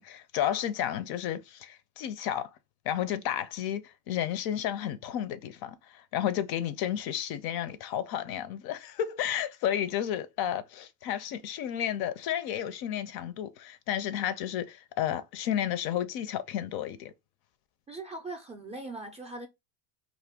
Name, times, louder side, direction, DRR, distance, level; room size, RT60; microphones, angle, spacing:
voice 1, 0.0-2.5 2.9-17.1, left 10 dB, 50° left, 0.5 m, -32 dB
voice 2, 17.9-19.5, right 2 dB, 15° right, 0.4 m, -40 dB
2.4 x 2.2 x 3.4 m
supercardioid pair, 90°, 49 cm